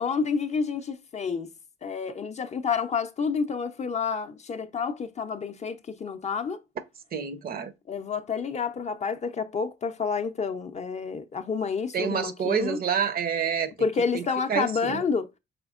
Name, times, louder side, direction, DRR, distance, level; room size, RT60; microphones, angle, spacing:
voice 1, 0.0-1.5 1.8-6.6 7.9-12.8 13.8-15.3, left 5 dB, 35° left, 0.4 m, -29 dB
voice 2, 7.1-7.7 11.9-13.7 14.1-14.2 14.5-15.0, right 7 dB, 50° right, 0.5 m, -28 dB
4.9 x 3.5 x 2.3 m
cardioid pair, 90°, 20 cm